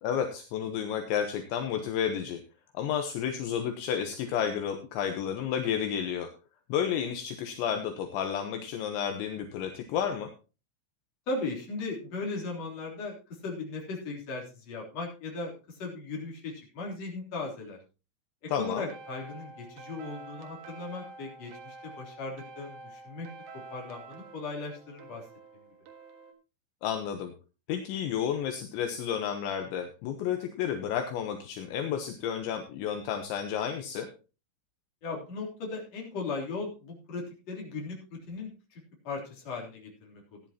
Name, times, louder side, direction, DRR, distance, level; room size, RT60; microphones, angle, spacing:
voice 1, 0.0-2.4 2.7-6.3 6.7-10.3 18.5-18.9 26.8-27.3 27.7-34.1, left 8 dB, 75° left, 6 dB, 3.2 m, -31 dB
voice 2, 11.3-13.2 13.4-17.8 18.6-23.3 23.5-25.2 35.0-40.4, left 3 dB, 35° left, -1 dB, 4.1 m, -37 dB
sound 1, 18.5-26.3, right 3 dB, 60° right, 3.4 m, -48 dB
16.5 x 11.0 x 2.9 m, 0.31 s
omnidirectional pair, 5.5 m